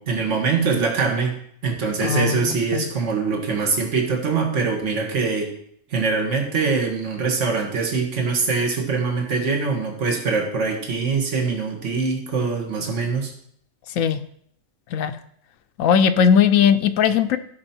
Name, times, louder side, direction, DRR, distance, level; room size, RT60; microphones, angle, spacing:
voice 1, 0.0-1.4 1.6-5.5 5.9-13.3, right 4 dB, 65° right, 1 dB, 2.0 m, -23 dB
voice 2, 2.0-2.8 14.0-14.2 14.9-15.1 15.8-17.4, left 7 dB, 80° left, 9 dB, 1.0 m, -18 dB
15.0 x 5.9 x 4.4 m, 0.65 s
omnidirectional pair, 1.4 m